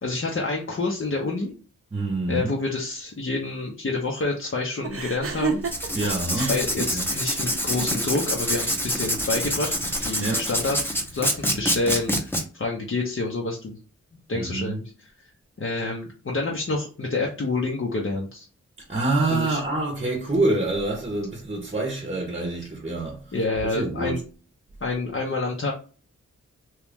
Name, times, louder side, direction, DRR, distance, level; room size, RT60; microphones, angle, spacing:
voice 1, 0.0-1.5 2.3-5.6 6.3-10.8 11.1-13.8 14.3-15.1 15.6-18.5 19.3-19.6 23.3-24.2 24.8-25.7, left 3 dB, 45° left, 0.7 m, -28 dB
voice 2, 1.9-2.5 5.9-6.6 6.9-7.0 10.2-10.5 14.3-14.8 18.9-23.2 23.6-24.2, right 2 dB, 20° right, 0.8 m, -26 dB
sound 1, 4.8-11.7, right 4 dB, 45° right, 0.5 m, -35 dB
Writing, 5.6-12.4, equal, 5° left, 0.8 m, -26 dB
3.0 x 2.3 x 3.5 m
wide cardioid pair, 60°, 31 cm